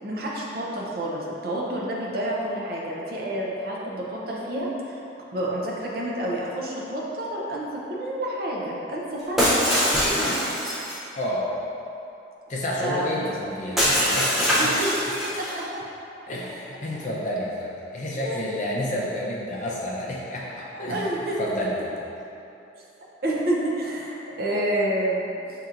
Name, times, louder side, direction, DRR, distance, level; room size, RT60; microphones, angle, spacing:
voice 1, 0.0-5.0 5.3-10.5 12.8-13.3 14.6-15.8 18.2-18.3 20.7-21.4 23.2-25.3, right 1 dB, 55° right, -4 dB, 0.6 m, -29 dB
Shatter, 9.4-11.0 13.8-15.6, equal, ahead, 0.6 m, -23 dB
voice 2, 11.2-11.5 12.5-14.7 16.3-21.1 21.4-22.0, left 1 dB, 40° left, -4 dB, 0.5 m, -30 dB
5.8 x 2.9 x 2.5 m, 2.8 s
head